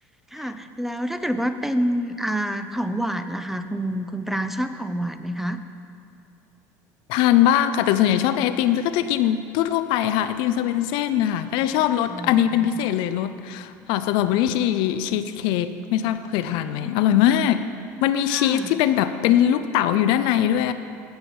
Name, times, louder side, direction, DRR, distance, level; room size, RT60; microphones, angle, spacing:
voice 1, 0.3-5.6 12.1-12.7 16.8-17.2 18.3-18.7, equal, 5° right, 9 dB, 0.6 m, -28 dB
voice 2, 7.1-17.7 18.0-20.7, left 11 dB, 70° left, 11 dB, 0.5 m, -21 dB
15.0 x 5.7 x 5.4 m, 2.6 s
supercardioid pair, 95°, 9 cm